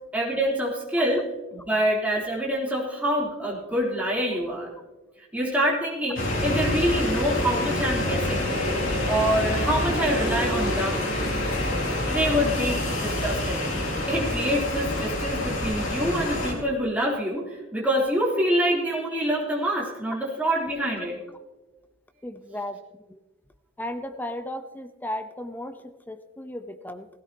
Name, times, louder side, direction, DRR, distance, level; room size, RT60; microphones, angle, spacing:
voice 1, 0.1-1.2 1.5-4.7 5.3-8.5 9.1-11.0 12.1-13.6 14.1-21.2, equal, 10° right, -5 dB, 3.6 m, -26 dB
sound 1, 6.2-16.5, left 1 dB, 80° left, 4.0 m, -26 dB
voice 2, 22.2-22.8 23.1-23.2 23.8-27.1, left 1 dB, 10° left, 8 dB, 0.8 m, -35 dB
17.5 x 16.0 x 3.0 m, 1.1 s
head